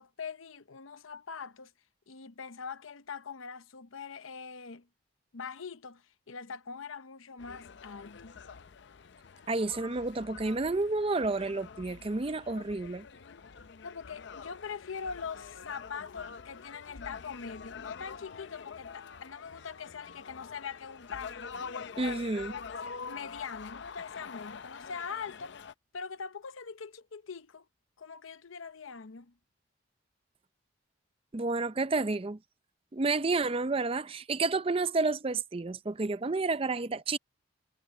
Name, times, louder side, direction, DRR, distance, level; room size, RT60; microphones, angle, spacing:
voice 1, 0.0-1.7 2.1-4.9 5.3-8.4 13.8-21.5 22.0-22.2 22.5-25.5 25.9-27.7 28.0-29.3, left 6 dB, 90° left, 0.8 m, -42 dB
sound 1, 7.4-25.7, left 5 dB, 60° left, 0.5 m, -46 dB
voice 2, 9.5-13.0 22.0-22.5 31.3-32.4 32.9-37.2, right 3 dB, 30° right, 0.5 m, -30 dB
head